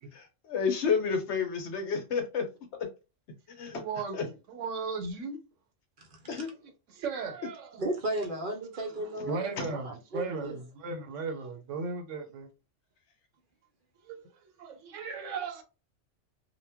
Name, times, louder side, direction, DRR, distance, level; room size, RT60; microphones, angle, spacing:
voice 1, 0.1-2.4 3.5-3.8 4.1-4.2 6.3-6.5 9.6-9.7, left 6 dB, 70° left, 1.0 m, -30 dB
voice 2, 3.7-5.4 6.9-7.8 8.7-12.5 14.0-15.6, right 4 dB, 85° right, 1.0 m, -37 dB
voice 3, 6.0-6.4 7.8-10.6, right 1 dB, 55° right, 0.7 m, -35 dB
2.1 x 2.1 x 3.4 m
omnidirectional pair, 1.3 m